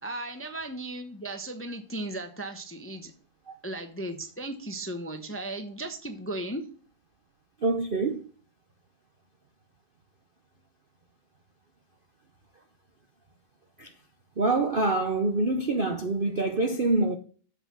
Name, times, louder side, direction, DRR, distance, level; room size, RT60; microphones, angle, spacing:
voice 1, 0.0-3.1 3.6-6.6, right 1 dB, 10° left, 0.7 m, -36 dB
voice 2, 7.6-8.2 13.8-13.9 14.4-17.2, right 2 dB, 45° right, 0.7 m, -25 dB
8.0 x 5.9 x 6.0 m
omnidirectional pair, 2.0 m